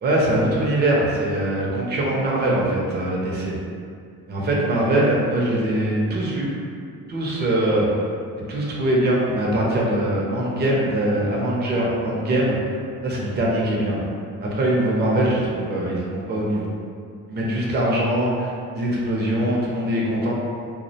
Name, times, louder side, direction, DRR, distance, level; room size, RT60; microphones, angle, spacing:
voice 1, 0.0-3.6 4.3-6.5 7.1-7.9 8.4-12.6 13.0-14.0 14.4-16.7 17.3-20.3, right 1 dB, 30° right, -4 dB, 0.5 m, -22 dB
2.4 x 2.0 x 2.7 m, 2.3 s
cardioid pair, 90°, 36 cm